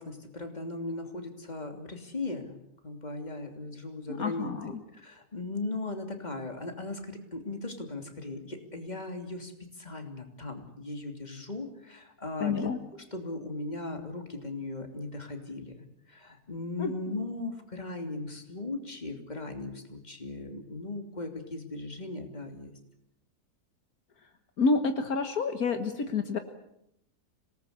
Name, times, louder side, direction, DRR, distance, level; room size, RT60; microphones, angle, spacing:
voice 1, 0.0-2.6 2.8-12.7 13.1-22.7, left 2 dB, 25° left, 5 dB, 3.1 m, -38 dB
voice 2, 4.2-4.7 12.4-12.8 16.8-16.9 24.6-26.4, left 4 dB, 70° left, 7 dB, 1.9 m, -28 dB
26.0 x 19.0 x 8.3 m, 0.79 s
omnidirectional pair, 1.6 m